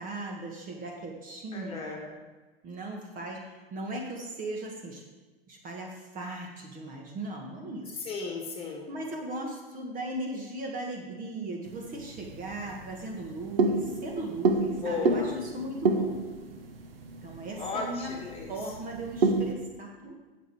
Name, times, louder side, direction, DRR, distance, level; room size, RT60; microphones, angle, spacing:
voice 1, 0.0-2.0 2.6-5.0 5.5-8.0 8.9-16.1 17.2-18.2 18.5-20.1, right 2 dB, 25° right, 1 dB, 1.7 m, -38 dB
voice 2, 1.5-2.1 8.1-8.9 14.7-15.3 17.6-18.5, left 3 dB, 20° left, -1 dB, 2.2 m, -35 dB
sound 1, 11.7-19.6, right 3 dB, 70° right, 1.1 m, -30 dB
11.0 x 7.5 x 4.8 m, 1.2 s
figure-of-eight pair, 100°, 30 cm